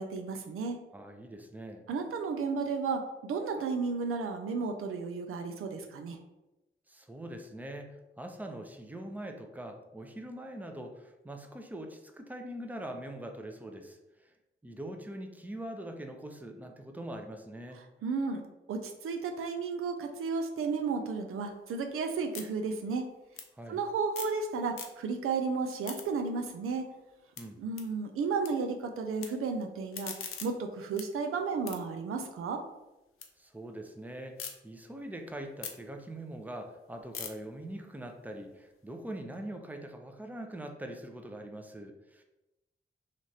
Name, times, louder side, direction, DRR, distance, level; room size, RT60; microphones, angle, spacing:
voice 1, 0.0-0.8 1.9-6.2 18.0-23.0 23.7-26.8 27.6-30.1 30.4-32.6, right 4 dB, 90° right, 5 dB, 0.4 m, -33 dB
voice 2, 0.9-1.8 6.9-14.3 14.6-17.8 23.5-23.8 27.4-27.6 33.4-42.2, right 1 dB, 10° right, 4 dB, 0.6 m, -43 dB
sound 1, 21.4-24.4 24.7-25.3 25.6-28.5 28.8-29.3 29.7-33.3 33.7-34.5 35.0-39.1, left 7 dB, 85° left, 0.5 m, -46 dB
3.1 x 2.5 x 4.1 m, 0.98 s
cardioid pair, 50°, 21 cm